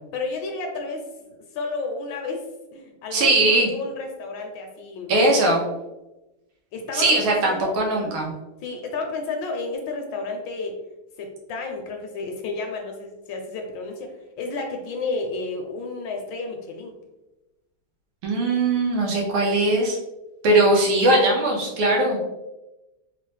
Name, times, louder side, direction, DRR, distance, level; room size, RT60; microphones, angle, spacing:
voice 1, 0.1-2.4 2.7-5.1 6.7-8.1 8.6-10.8 11.2-16.9, left 3 dB, 75° left, 3 dB, 1.2 m, -32 dB
voice 2, 3.1-3.7 5.1-5.6 6.9-8.3 18.2-20.0 20.4-22.2, right 2 dB, 85° right, -2 dB, 1.7 m, -20 dB
4.2 x 2.0 x 3.1 m, 1.0 s
omnidirectional pair, 2.2 m